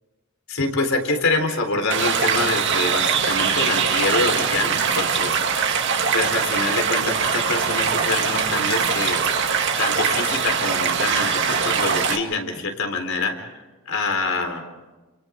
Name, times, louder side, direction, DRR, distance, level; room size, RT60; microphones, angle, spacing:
voice 1, 0.5-5.3 6.1-9.2 9.8-14.6, left 3 dB, 80° left, 4 dB, 4.0 m, -25 dB
sound 1, 1.9-12.2, right 6 dB, 60° right, 2.3 m, -22 dB
29.5 x 28.5 x 3.7 m, 1.2 s
head